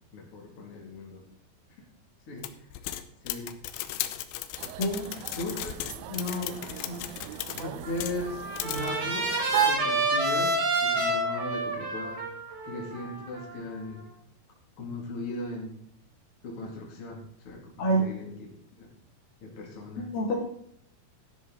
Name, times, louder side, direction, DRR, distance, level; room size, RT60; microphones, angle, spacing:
voice 1, 0.1-1.2 2.3-2.5 3.2-3.5 5.4-7.1 7.5-9.4 9.6-12.3 12.6-14.0 14.8-15.8 16.4-18.5 18.8-18.9 19.4-20.1, left 2 dB, 35° left, -2 dB, 3.1 m, -37 dB
sound 1, 2.4-8.2 8.6-8.9, left 13 dB, 80° left, 2.6 m, -36 dB
sound 2, 4.6-9.7, right 11 dB, 80° right, 2.1 m, -35 dB
voice 2, 4.8-5.1 17.8-18.1 20.0-20.4, right 1 dB, 60° left, -1 dB, 4.2 m, -26 dB
Trumpet, 7.8-14.0, right 2 dB, 60° right, 4.7 m, -29 dB
13.0 x 11.0 x 4.0 m, 0.64 s
omnidirectional pair, 4.8 m